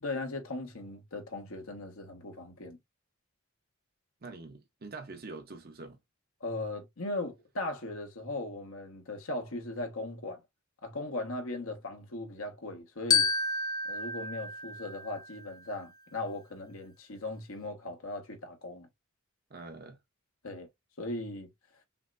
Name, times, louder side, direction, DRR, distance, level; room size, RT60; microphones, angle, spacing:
voice 1, 0.0-2.8 6.4-10.4 10.8-13.3 13.8-18.9 20.4-20.7 21.0-21.5, left 2 dB, 90° left, 1.1 m, -38 dB
voice 2, 4.2-6.0 19.5-20.0, right 3 dB, 50° right, 0.8 m, -45 dB
Glockenspiel, 13.1-15.6, left 4 dB, 20° left, 0.4 m, -30 dB
5.8 x 2.0 x 2.4 m
head